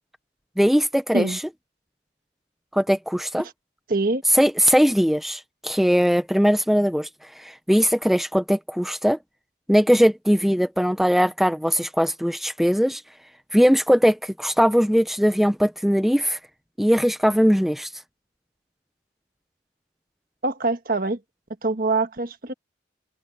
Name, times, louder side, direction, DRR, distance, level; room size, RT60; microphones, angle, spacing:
voice 1, 0.6-1.4 2.7-3.4 4.3-7.1 7.4-9.2 9.7-13.0 13.5-16.4 16.8-17.9, equal, ahead, 0.7 m, -20 dB
voice 2, 3.9-4.2 20.4-21.2 21.6-22.5, right 3 dB, 50° right, 1.5 m, -24 dB
head